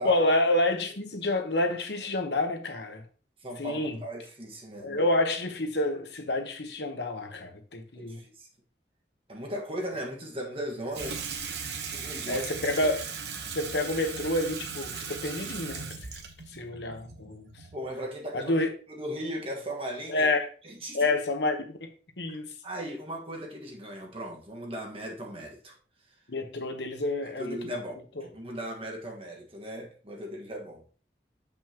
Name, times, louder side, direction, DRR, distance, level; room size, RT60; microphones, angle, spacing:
voice 1, 0.0-3.0 3.6-4.0 4.8-8.2 12.3-13.0 13.5-15.9 16.5-17.5 18.3-18.7 20.1-20.5 20.9-21.9 22.2-22.5 26.3-27.6 28.2-28.3, left 2 dB, 75° left, 1.1 m, -28 dB
voice 2, 3.4-5.0 7.9-8.5 9.3-11.2 11.9-12.5 17.7-18.5 18.9-20.3 20.6-21.1 22.6-25.8 27.2-30.8, equal, 30° right, 1.6 m, -37 dB
Water tap faucet / Sink (filling or washing), 10.9-18.0, right 5 dB, 70° right, 1.0 m, -38 dB
7.4 x 5.5 x 3.0 m
head